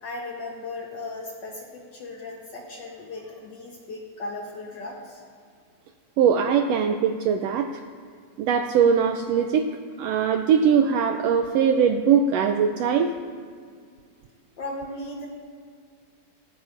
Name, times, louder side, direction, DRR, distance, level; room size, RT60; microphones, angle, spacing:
voice 1, 0.0-5.2 14.6-15.3, left 2 dB, 65° left, -1 dB, 1.1 m, -36 dB
voice 2, 6.2-7.8 8.4-9.7 10.0-13.2, right 7 dB, 85° right, 6 dB, 1.4 m, -21 dB
16.0 x 16.0 x 2.5 m, 2.1 s
omnidirectional pair, 3.4 m